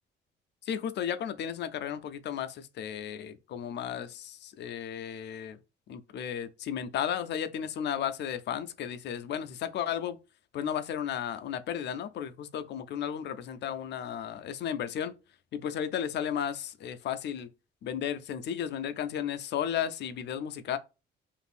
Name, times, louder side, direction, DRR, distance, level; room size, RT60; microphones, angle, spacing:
voice 1, 0.6-5.6 5.9-10.2 10.5-15.1 15.5-17.5 17.8-20.8, left 9 dB, 60° left, 0.4 m, -34 dB
2.5 x 2.5 x 3.3 m
cardioid pair, 90°, 20 cm